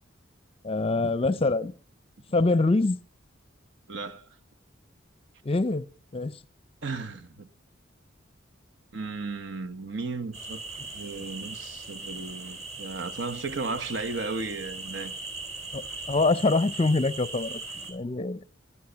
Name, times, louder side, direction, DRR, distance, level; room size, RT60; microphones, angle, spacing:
voice 1, 0.6-1.7 2.3-3.0 5.4-5.9 6.1-6.4 15.7-17.6 17.9-18.4, left 3 dB, 30° left, 0.6 m, -24 dB
voice 2, 3.9-4.3 6.8-7.5 8.9-10.6 10.9-15.1, right 3 dB, 65° right, 1.1 m, -35 dB
sound 1, 10.3-17.9, right 3 dB, 35° right, 3.6 m, -39 dB
16.5 x 10.0 x 5.7 m
head